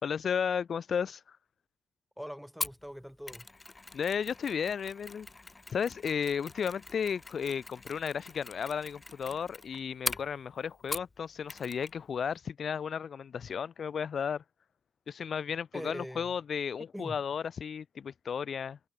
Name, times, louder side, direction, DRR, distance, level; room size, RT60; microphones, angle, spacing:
voice 1, 0.0-1.4 3.9-5.3 5.7-14.4 15.1-18.8, left 7 dB, 55° left, 1.5 m, -34 dB
voice 2, 2.2-3.5 15.7-16.3 16.9-17.2, equal, ahead, 4.7 m, -42 dB
Mechanisms, 2.6-11.2 11.5-12.0 12.2-12.3, left 3 dB, 30° left, 1.4 m, -42 dB
hypercardioid pair, 45°, 0 cm